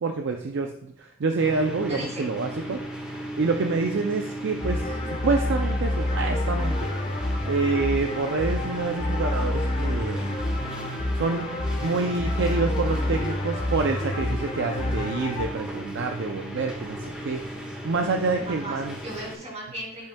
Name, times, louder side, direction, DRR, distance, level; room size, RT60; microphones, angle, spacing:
voice 1, 0.0-2.8 3.4-6.9 7.4-10.4 11.2-11.5 11.8-19.0, right 4 dB, 55° right, 4 dB, 0.5 m, -27 dB
sound 1, 1.4-19.3, equal, 5° right, 1.4 m, -37 dB
voice 2, 1.9-2.3 18.3-20.1, right 1 dB, 30° right, -2 dB, 2.5 m, -37 dB
sound 2, 4.6-15.5, left 1 dB, 30° left, 1.0 m, -28 dB
10.5 x 5.3 x 2.2 m, 0.74 s
head